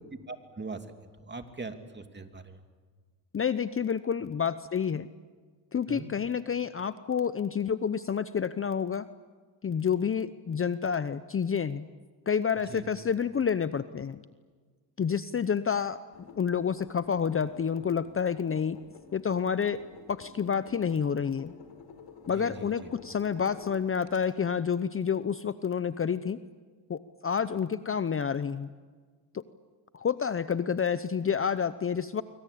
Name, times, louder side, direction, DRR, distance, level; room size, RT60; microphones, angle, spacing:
voice 1, 0.3-0.8 1.3-2.6 5.9-6.1 12.7-12.8 22.3-22.9, right 3 dB, 25° right, 6 dB, 2.9 m, -41 dB
voice 2, 3.3-5.1 5.7-9.1 9.6-11.9 12.3-14.2 15.0-16.0 16.4-18.8 19.1-19.8 20.1-21.5 22.3-26.4 26.9-28.7 29.3-29.4 29.9-32.2, left 7 dB, 30° left, 14 dB, 0.8 m, -29 dB
sound 1, 16.1-24.2, left 5 dB, 70° left, 4.2 m, -51 dB
25.0 x 24.5 x 8.6 m, 1.5 s
cardioid pair, 80°, 44 cm